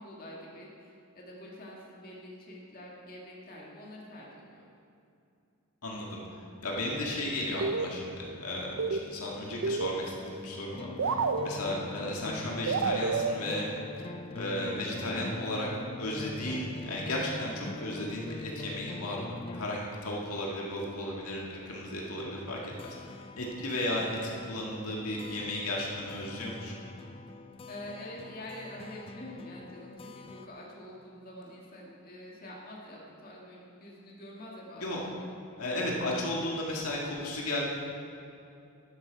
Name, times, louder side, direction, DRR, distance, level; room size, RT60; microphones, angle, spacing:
voice 1, 0.0-4.6 27.6-35.3, left 1 dB, 40° left, -4 dB, 2.0 m, -46 dB
voice 2, 5.8-6.2 6.6-13.7 14.0-15.7 16.0-23.0 23.4-26.7 34.8-35.0 35.6-37.6, left 1 dB, 75° left, -3 dB, 2.0 m, -34 dB
sound 1, 7.6-8.3 8.6-10.4 10.7-10.8 11.0-12.1 12.7-14.2, right 4 dB, 60° right, 0.5 m, -31 dB
sound 2, 10.7-19.8 22.2-30.5, left 3 dB, 25° left, 0.4 m, -44 dB
12.5 x 11.0 x 4.7 m, 2.6 s
head